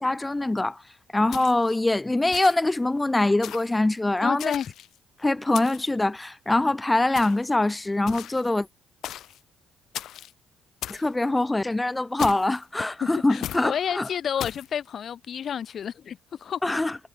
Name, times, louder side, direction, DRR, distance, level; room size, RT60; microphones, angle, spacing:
voice 1, 0.0-0.8 1.1-4.5 5.2-8.7 10.9-14.1 16.6-17.0, left 2 dB, 15° left, 0.4 m, -24 dB
sound 1, 1.3-1.8 2.3-2.8 3.4-3.8 4.4-5.0 5.5-6.0 7.2-7.5 8.1-8.5 9.0-9.4 9.9-10.3 10.8-11.1 12.2-12.6 13.4-13.7 14.4-14.7, left 12 dB, 80° left, 0.7 m, -37 dB
voice 2, 4.2-4.7 13.0-16.6, left 8 dB, 60° left, 1.8 m, -30 dB
cardioid pair, 90°, 0 cm